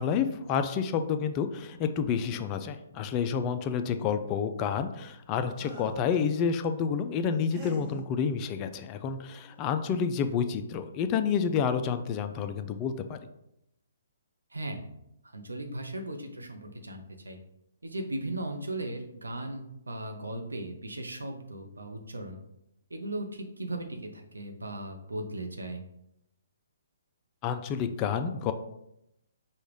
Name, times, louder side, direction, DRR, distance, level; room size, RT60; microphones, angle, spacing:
voice 1, 0.0-13.2 27.4-28.5, left 7 dB, 30° left, 9 dB, 0.3 m, -29 dB
sound 1, 5.5-6.1 7.5-8.0 9.4-9.6 9.9-10.2, left 1 dB, 20° right, 0.9 m, -46 dB
voice 2, 14.5-14.9 15.2-17.4 17.8-22.4 22.9-25.8, right 1 dB, 85° right, 3 dB, 0.7 m, -37 dB
5.2 x 2.3 x 3.2 m, 0.81 s
figure-of-eight pair, 130°, 0 cm